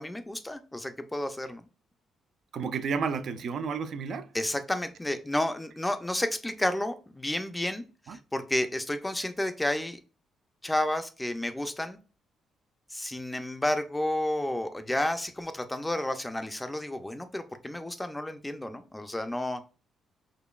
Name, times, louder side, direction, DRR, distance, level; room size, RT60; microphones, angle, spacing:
voice 1, 0.0-1.6 4.3-10.0 10.6-12.0 12.9-19.6, left 1 dB, 10° left, 0.4 m, -31 dB
voice 2, 2.5-4.3 8.1-8.2, right 5 dB, 60° right, 0.4 m, -31 dB
3.9 x 3.0 x 2.3 m
cardioid pair, 90°, 0 cm